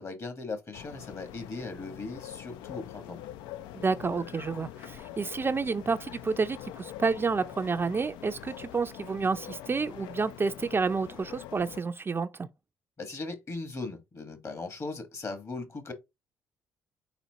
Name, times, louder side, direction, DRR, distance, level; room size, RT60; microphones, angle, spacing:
voice 1, 0.0-3.2 13.0-15.9, left 3 dB, 40° left, 1.4 m, -38 dB
sound 1, 0.7-11.8, left 12 dB, 75° left, 0.4 m, -44 dB
voice 2, 3.7-12.5, right 4 dB, 30° right, 0.4 m, -30 dB
4.2 x 4.1 x 2.8 m
hypercardioid pair, 50°, 8 cm